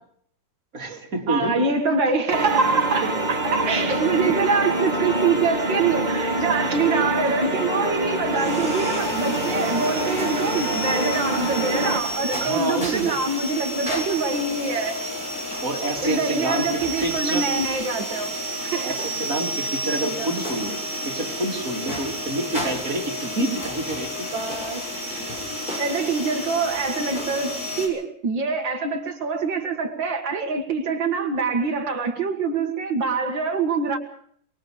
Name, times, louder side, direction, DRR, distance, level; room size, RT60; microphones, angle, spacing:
voice 1, 0.7-1.6 3.0-3.1 4.1-4.2 12.4-13.2 15.6-17.5 18.8-24.3 25.2-25.3, right 2 dB, 45° right, 0 dB, 3.4 m, -28 dB
voice 2, 1.3-15.0 16.0-18.4 18.6-19.0 19.9-20.3 24.3-24.9 25.8-34.0, right 4 dB, 90° right, 3 dB, 2.6 m, -25 dB
sound 1, 2.3-12.0, right 1 dB, 25° right, 2.1 m, -26 dB
sound 2, 8.2-27.9, equal, 25° left, 6.8 m, -31 dB
24.5 x 22.5 x 5.1 m, 0.62 s
omnidirectional pair, 2.0 m